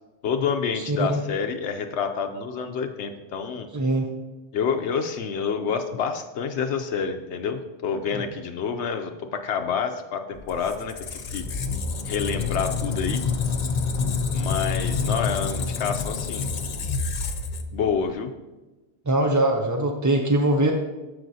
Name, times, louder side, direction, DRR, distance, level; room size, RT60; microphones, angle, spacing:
voice 1, 0.2-3.7 4.5-11.4 12.0-13.2 14.3-16.5 17.7-18.3, left 6 dB, 80° left, 5 dB, 0.9 m, -28 dB
voice 2, 0.8-1.2 3.7-4.1 19.1-20.7, right 1 dB, 25° right, 2 dB, 0.4 m, -22 dB
Squeak, 10.4-18.1, left 4 dB, 50° left, 0.7 m, -28 dB
13.5 x 5.0 x 2.7 m, 1.1 s
omnidirectional pair, 1.1 m